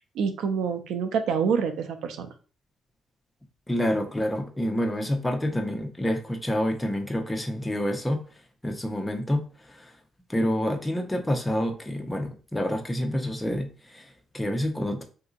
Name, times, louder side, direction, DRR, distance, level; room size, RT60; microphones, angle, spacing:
voice 1, 0.0-2.3, right 6 dB, 80° right, 7 dB, 0.5 m, -27 dB
voice 2, 3.7-8.2 8.6-10.0 10.3-15.0, left 1 dB, 10° left, 4 dB, 0.7 m, -28 dB
3.8 x 2.7 x 2.5 m, 0.37 s
cardioid pair, 90°, 0 cm